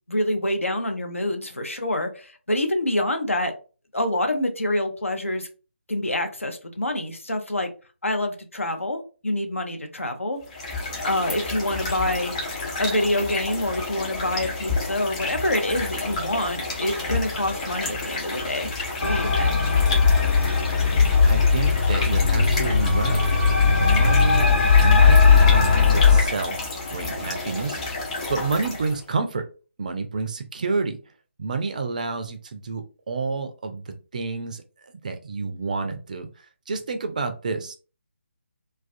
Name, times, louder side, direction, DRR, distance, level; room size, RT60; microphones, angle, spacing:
voice 1, 0.0-3.5 3.9-5.5 5.9-7.7 8.0-10.4 11.0-12.3 12.8-18.7 19.0-19.6, left 1 dB, 80° left, 0.6 m, -26 dB
sound 1, 10.4-29.0, left 3 dB, 30° left, 0.8 m, -31 dB
sound 2, 19.0-26.2, left 5 dB, 60° left, 0.9 m, -18 dB
voice 2, 21.2-23.2 23.8-24.5 24.8-26.6 26.9-29.5 29.8-31.0 31.4-34.6 35.0-36.3 36.7-37.8, right 4 dB, 35° right, 0.3 m, -29 dB
2.3 x 2.1 x 2.5 m
figure-of-eight pair, 150°, 7 cm